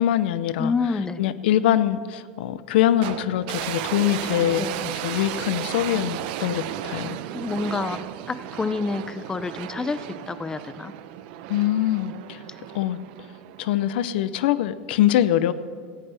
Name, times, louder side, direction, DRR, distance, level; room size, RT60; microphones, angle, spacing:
voice 1, 0.0-0.7 1.2-7.2 11.5-12.4 12.7-13.0 13.6-15.5, left 12 dB, 80° left, 15 dB, 0.6 m, -23 dB
voice 2, 0.6-1.2 4.6-4.8 7.3-8.0 8.3-10.9, left 4 dB, 10° left, 14 dB, 0.4 m, -28 dB
sound 1, 3.0-14.2, right 12 dB, 65° right, 0.7 m, -34 dB
17.5 x 15.0 x 3.4 m, 2.1 s
supercardioid pair, 135°, 6 cm